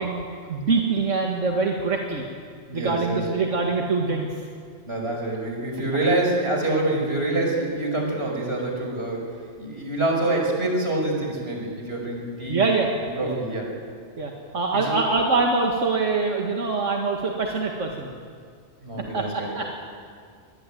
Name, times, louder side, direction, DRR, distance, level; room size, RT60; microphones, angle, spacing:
voice 1, 0.0-2.2 2.7-4.4 12.5-12.9 13.2-13.4 14.2-18.1 19.1-19.7, right 3 dB, 90° right, 1 dB, 2.2 m, -24 dB
voice 2, 2.7-3.3 4.9-9.2 9.6-12.6 13.0-13.7 14.7-15.0 18.8-19.5, right 2 dB, 55° right, 1 dB, 6.0 m, -26 dB
24.0 x 20.5 x 9.1 m, 2.1 s
omnidirectional pair, 1.2 m